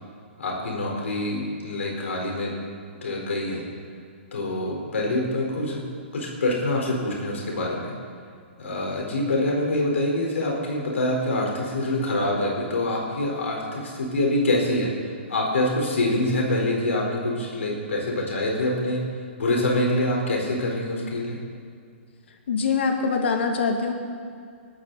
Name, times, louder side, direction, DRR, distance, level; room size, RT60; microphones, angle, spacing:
voice 1, 0.4-2.5 3.0-3.6 4.3-5.9 6.1-7.9 8.6-19.0 19.4-21.4, left 1 dB, 90° left, -1 dB, 4.5 m, -25 dB
voice 2, 22.3-23.9, left 5 dB, 65° left, 3 dB, 1.9 m, -24 dB
21.5 x 13.5 x 4.2 m, 2.2 s
hypercardioid pair, 160°, 7 cm